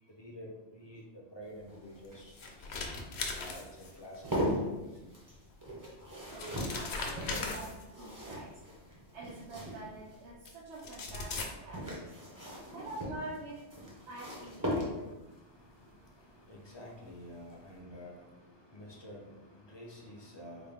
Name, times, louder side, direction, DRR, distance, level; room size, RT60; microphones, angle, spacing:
voice 1, 0.2-2.3 3.4-3.7 4.0-4.2 4.5-5.0 7.1-7.5 12.2-13.0 13.8-20.7, equal, 30° left, -1 dB, 0.6 m, -49 dB
sound 1, 1.4-10.3 11.4-15.3 16.9-17.2 17.5-17.6, equal, 20° right, 0.8 m, -39 dB
sound 2, 2.0-4.2 5.5-5.6 6.1-8.1 9.3-9.4 10.5-10.6 10.8-11.4, left 4 dB, 75° left, 0.9 m, -39 dB
voice 2, 6.3-7.7 8.0-8.6 9.1-12.2 12.7-13.7 14.1-15.2, right 2 dB, 85° right, -6 dB, 0.9 m, -46 dB
4.1 x 2.2 x 3.5 m, 1.1 s
omnidirectional pair, 1.1 m